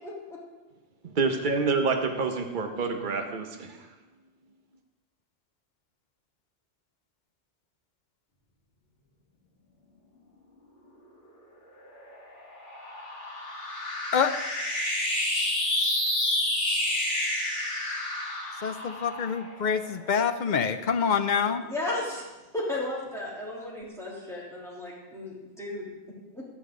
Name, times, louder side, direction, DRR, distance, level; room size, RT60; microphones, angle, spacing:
voice 1, 0.0-0.4 21.6-22.2 22.5-26.5, left 2 dB, ahead, -7 dB, 3.2 m, -35 dB
voice 2, 1.0-3.8, right 4 dB, 45° right, 4 dB, 1.1 m, -27 dB
sound 1, 11.8-20.4, left 1 dB, 85° left, 2.8 m, -30 dB
voice 3, 18.6-21.6, left 6 dB, 50° left, 10 dB, 0.6 m, -26 dB
12.5 x 10.0 x 3.8 m, 1.2 s
omnidirectional pair, 1.2 m